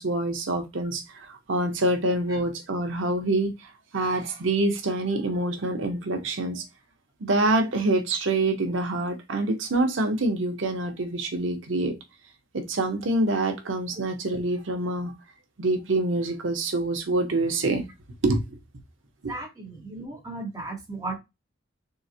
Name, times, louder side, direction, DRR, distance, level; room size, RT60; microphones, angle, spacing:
voice 1, 0.0-6.6 7.2-12.0 12.5-15.1 15.6-17.8 18.2-18.4 19.2-19.3, right 2 dB, 80° right, 0.8 m, -26 dB
voice 2, 19.3-21.2, right 2 dB, 20° right, 0.9 m, -35 dB
3.7 x 2.1 x 2.7 m
head